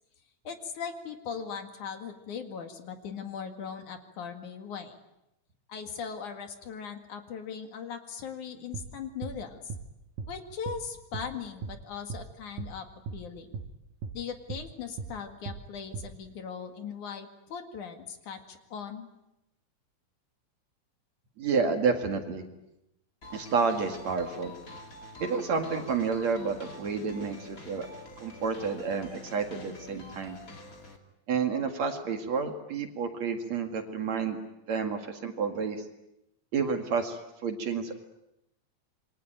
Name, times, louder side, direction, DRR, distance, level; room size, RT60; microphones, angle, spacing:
voice 1, 0.4-5.0 5.7-9.6 10.3-13.6 14.1-19.1, left 6 dB, 60° left, 6 dB, 3.3 m, -39 dB
sound 1, 8.7-8.9 9.2-9.4 9.7-9.9 10.2-10.3 10.7-10.8 11.1-11.3 11.6-11.8 12.1-12.3 12.6-12.7 13.1-13.2 13.5-13.7 14.0-14.2 14.5-14.7 15.0-15.1 15.5-15.6 15.9-16.1, right 5 dB, 85° right, 3.2 m, -37 dB
voice 2, 21.4-22.4 23.3-24.5 25.2-27.9 28.2-30.4 31.3-34.4 34.7-35.8 36.5-38.0, right 5 dB, 55° right, 5 dB, 3.1 m, -30 dB
sound 2, 23.2-31.0, left 2 dB, 25° left, 2.8 m, -47 dB
27.5 x 23.5 x 9.1 m, 0.87 s
omnidirectional pair, 4.0 m